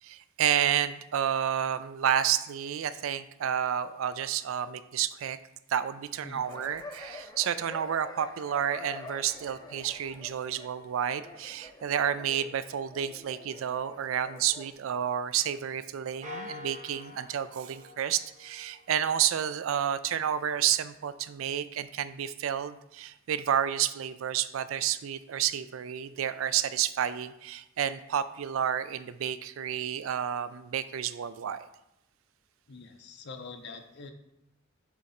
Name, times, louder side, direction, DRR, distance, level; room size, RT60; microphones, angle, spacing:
voice 1, 0.0-5.4 5.7-31.7, right 9 dB, 75° right, 14 dB, 0.4 m, -30 dB
sound 1, 6.4-14.7, left 2 dB, 20° left, 0.5 m, -47 dB
sound 2, 16.2-18.9, left 2 dB, 40° right, 1.0 m, -45 dB
voice 2, 32.7-34.1, left 4 dB, 55° left, 7 dB, 0.7 m, -44 dB
7.2 x 3.8 x 4.2 m, 0.87 s
head